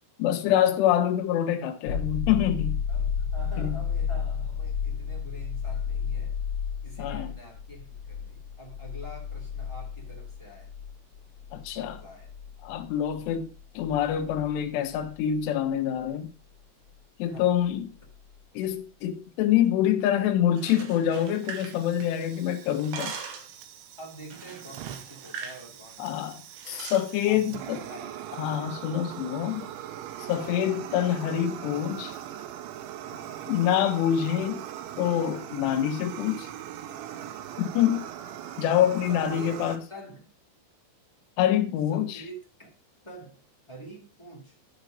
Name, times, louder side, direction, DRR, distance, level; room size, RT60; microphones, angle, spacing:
voice 1, 0.2-2.8 3.6-3.8 7.0-7.3 11.5-12.0 12.6-13.5 13.8-16.3 17.2-17.9 18.6-23.1 26.0-26.4 26.7-27.8 28.4-29.7 30.2-32.2 33.5-34.6 35.0-36.5 37.6-38.1 38.6-39.8 41.4-42.2, left 10 dB, 75° left, 3.0 m, -26 dB
sound 1, 1.9-15.4 18.1-18.2, left 7 dB, 50° left, 2.1 m, -33 dB
voice 2, 2.9-6.4 6.8-10.7 11.7-12.3 17.2-17.6 24.0-26.2 27.2-28.2 30.4-30.8 33.1-33.4 39.1-40.3 41.9-42.7 43.0-43.4 43.7-44.5, right 1 dB, 25° left, 0.6 m, -46 dB
sound 2, 20.4-22.4 22.7-23.6 24.3-25.6 25.9-26.1 26.5-27.1, right 6 dB, 65° right, 2.9 m, -40 dB
Fire, 21.1-39.8, right 11 dB, 85° right, 3.2 m, -41 dB
13.0 x 4.3 x 5.0 m
omnidirectional pair, 5.3 m